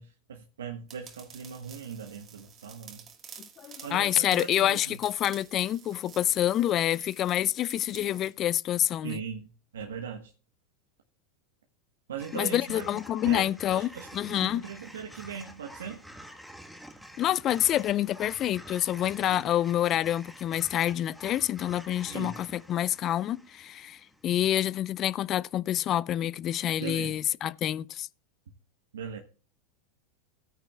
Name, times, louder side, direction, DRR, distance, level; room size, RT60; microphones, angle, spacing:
voice 1, 0.0-3.0 3.8-5.0 9.0-10.3 12.1-13.0 13.2-16.0 19.2-19.4 22.0-22.4 26.8-27.2 28.9-29.2, right 7 dB, 85° right, 1.2 m, -39 dB
sound 1, 0.9-8.3, right 7 dB, 35° right, 2.1 m, -50 dB
voice 2, 3.4-9.2 12.3-14.6 17.2-28.1, left 12 dB, 40° left, 0.4 m, -27 dB
sound 2, 12.2-24.5, equal, ahead, 1.4 m, -48 dB
16.0 x 9.4 x 2.3 m
hypercardioid pair, 95°, 0 cm